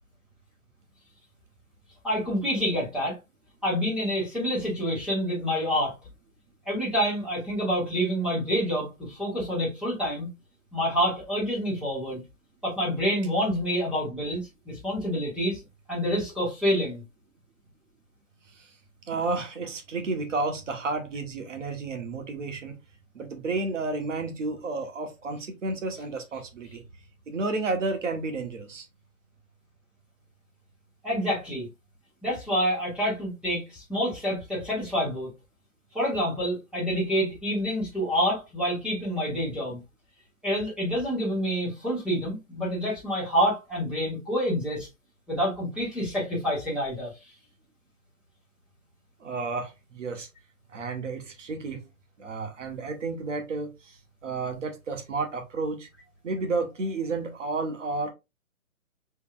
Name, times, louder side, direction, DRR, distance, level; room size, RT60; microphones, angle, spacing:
voice 1, 2.0-3.1 3.6-5.9 6.6-10.3 10.7-12.2 12.6-15.6 15.9-17.0 31.0-31.7 32.2-35.3 35.9-39.8 40.4-44.9 45.3-47.1, equal, ahead, 1.6 m, -27 dB
voice 2, 19.1-22.7 23.1-26.8 27.3-28.9 49.2-50.3 50.7-51.8 52.2-54.0 54.2-55.9 56.2-58.1, right 3 dB, 60° right, 1.4 m, -31 dB
5.2 x 3.5 x 2.5 m
figure-of-eight pair, 145°, 43 cm